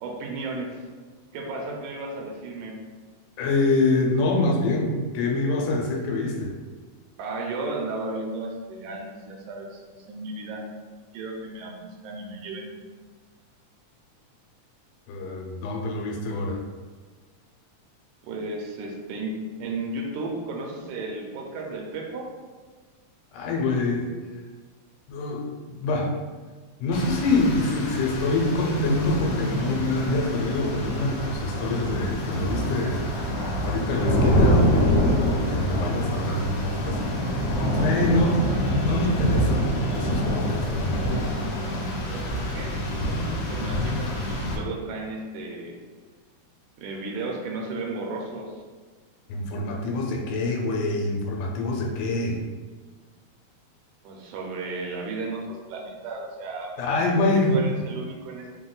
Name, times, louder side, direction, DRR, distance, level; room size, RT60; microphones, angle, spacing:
voice 1, 0.0-0.9 1.3-2.8 7.2-10.6 11.1-12.7 18.2-22.3 42.1-45.8 46.8-48.6 54.0-56.7 57.5-58.5, right 2 dB, 80° right, 0 dB, 2.1 m, -34 dB
voice 2, 3.4-6.5 15.1-16.6 23.3-24.1 25.1-26.1 26.8-33.0 33.6-37.4 37.8-38.5 38.8-41.2 49.3-52.4 56.8-57.6, left 2 dB, 90° left, 0 dB, 2.2 m, -25 dB
Rain, 26.9-44.6, equal, 70° left, 1.7 m, -26 dB
5.1 x 2.2 x 3.8 m, 1.4 s
omnidirectional pair, 3.5 m